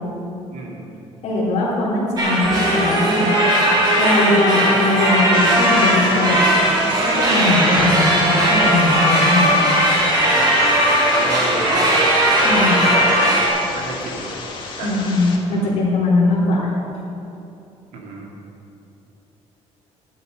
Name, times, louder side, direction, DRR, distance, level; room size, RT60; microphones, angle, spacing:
voice 1, 0.5-1.0 10.3-12.2 12.7-13.1 13.7-14.3 14.7-14.9 15.5-15.7 17.9-18.3, right 2 dB, 90° right, -2 dB, 2.6 m, -29 dB
voice 2, 1.2-3.3 4.0-6.4 6.8-9.5 12.4-12.9 14.8-16.7, left 2 dB, 85° left, -9 dB, 3.4 m, -20 dB
sound 1, 2.2-13.5, right 1 dB, 35° right, 3.1 m, -17 dB
sound 2, 5.3-15.4, left 4 dB, 45° left, 1.4 m, -33 dB
11.5 x 11.0 x 5.3 m, 2.8 s
cardioid pair, 170°, 12 cm